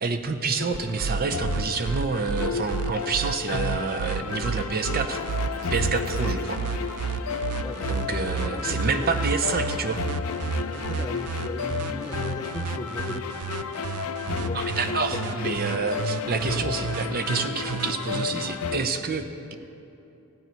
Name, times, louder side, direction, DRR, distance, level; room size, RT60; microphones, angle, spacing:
voice 1, 0.0-5.2 5.7-6.6 7.9-10.0 14.5-19.6, right 4 dB, 40° right, 7 dB, 0.6 m, -28 dB
sound 1, 0.6-18.8, left 5 dB, 70° left, 0.5 m, -33 dB
sound 2, 0.7-18.3, right 6 dB, 85° right, 0.4 m, -31 dB
sound 3, 4.9-10.5 10.9-11.4, left 3 dB, 45° left, 0.8 m, -48 dB
voice 2, 7.6-9.2 10.6-13.4 14.3-14.6 14.8-15.5, left 2 dB, 20° left, 7 dB, 0.4 m, -38 dB
15.0 x 9.3 x 4.5 m, 2.9 s
head